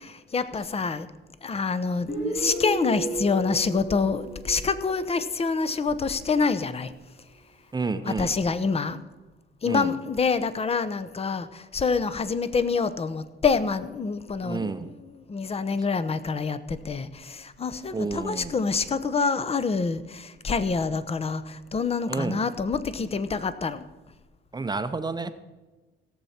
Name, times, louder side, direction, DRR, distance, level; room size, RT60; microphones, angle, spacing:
voice 1, 0.3-1.1 1.4-6.9 8.0-9.0 9.6-23.8, left 4 dB, 30° left, 13 dB, 0.7 m, -26 dB
Guitar, 2.1-5.6, right 2 dB, 50° left, 4.0 m, -33 dB
voice 2, 7.7-8.3 9.6-9.9 14.4-14.9 17.9-18.5 22.1-22.4 24.5-25.3, right 4 dB, 20° right, 10 dB, 0.7 m, -30 dB
17.0 x 7.2 x 4.3 m, 1.2 s
cardioid pair, 90°, 20 cm